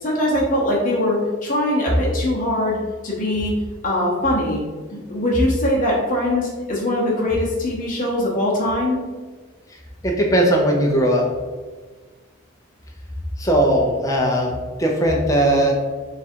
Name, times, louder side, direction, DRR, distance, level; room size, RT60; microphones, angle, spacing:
voice 1, 0.0-2.8 3.0-3.5 3.8-4.6 4.9-9.0, left 1 dB, 40° left, -5 dB, 0.8 m, -22 dB
voice 2, 10.0-11.3 13.4-14.5 14.8-15.7, right 1 dB, 15° left, -1 dB, 0.5 m, -18 dB
3.9 x 2.4 x 4.3 m, 1.4 s
head